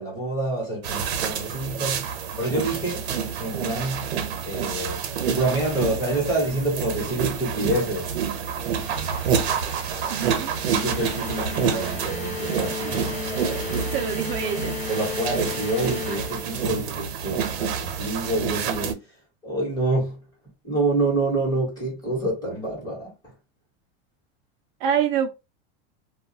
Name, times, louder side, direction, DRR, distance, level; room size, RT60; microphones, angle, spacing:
voice 1, 0.0-2.1 2.4-3.1 3.4-4.1 4.5-8.1 10.7-13.1 14.9-19.0 19.4-20.2 20.6-23.1, right 2 dB, 10° left, 1.1 m, -27 dB
sound 1, 0.8-18.9, right 7 dB, 85° right, 0.8 m, -28 dB
sound 2, 8.6-17.0, left 6 dB, 50° left, 1.0 m, -35 dB
voice 2, 10.1-10.5 12.8-12.9 13.9-14.7 24.8-25.3, right 8 dB, 55° right, 0.4 m, -26 dB
2.3 x 2.2 x 2.7 m
supercardioid pair, 165°, 32 cm